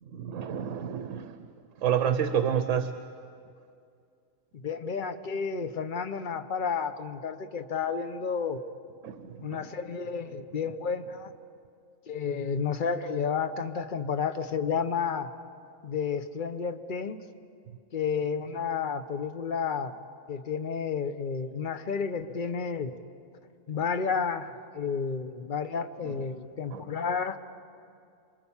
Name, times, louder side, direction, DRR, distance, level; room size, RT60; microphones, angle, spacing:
voice 1, 0.1-1.5 1.8-2.9 9.0-9.6 26.0-26.2 26.7-26.8, right 8 dB, 65° right, 9 dB, 1.1 m, -29 dB
voice 2, 4.5-8.7 9.4-11.3 12.1-15.3 15.8-17.2 17.9-20.0 20.3-22.9 23.7-27.4, left 6 dB, 40° left, 9 dB, 1.0 m, -31 dB
28.0 x 24.0 x 7.2 m, 2.4 s
omnidirectional pair, 1.5 m